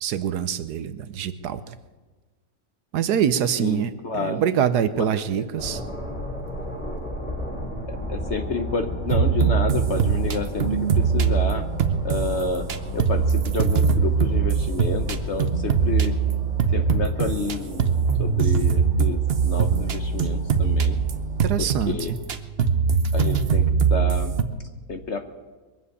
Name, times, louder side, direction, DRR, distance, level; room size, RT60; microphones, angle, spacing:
voice 1, 0.0-1.8 2.9-5.8 21.4-22.2, right 9 dB, 70° right, 13 dB, 1.2 m, -25 dB
voice 2, 3.6-4.4 5.0-5.5 7.9-11.6 12.0-12.6 12.9-16.1 16.7-17.9 18.2-21.0 21.6-22.1 23.1-24.3 24.9-25.3, left 4 dB, 50° left, 7 dB, 1.0 m, -30 dB
sound 1, 5.6-22.2, equal, 5° left, 2.7 m, -35 dB
sound 2, 9.1-17.5 17.8-24.4, right 6 dB, 50° right, 0.8 m, -22 dB
22.5 x 7.5 x 8.3 m, 1.3 s
omnidirectional pair, 1.9 m